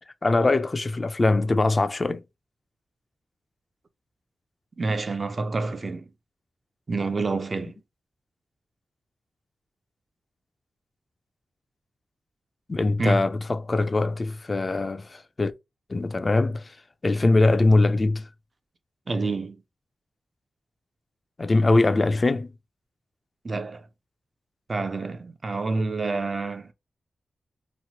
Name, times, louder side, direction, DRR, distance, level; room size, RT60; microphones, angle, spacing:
voice 1, 0.2-2.2 12.7-15.5 15.9-16.8 17.0-18.3 21.4-22.5, left 2 dB, 35° left, 0.4 m, -22 dB
voice 2, 4.8-6.1 6.9-7.8 13.0-13.2 19.1-19.6 23.4-23.9 24.7-26.7, right 3 dB, 40° right, 0.4 m, -28 dB
3.0 x 2.1 x 2.8 m
cardioid pair, 80°, 0 cm